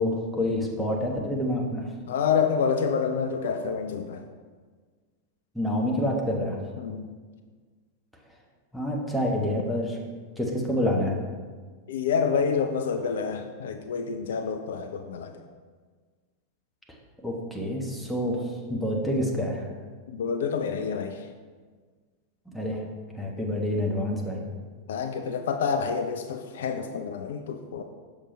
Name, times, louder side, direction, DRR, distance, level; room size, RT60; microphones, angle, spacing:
voice 1, 0.0-1.9 5.5-6.6 8.7-10.0 10.4-11.2 17.2-19.7 22.5-22.8 23.1-24.4, left 1 dB, ahead, -3 dB, 1.1 m, -27 dB
voice 2, 2.1-4.2 6.8-7.1 11.9-15.4 20.1-21.3 24.9-27.8, left 6 dB, 60° left, 7 dB, 0.4 m, -28 dB
6.5 x 5.7 x 3.1 m, 1.5 s
figure-of-eight pair, 90°, 0 cm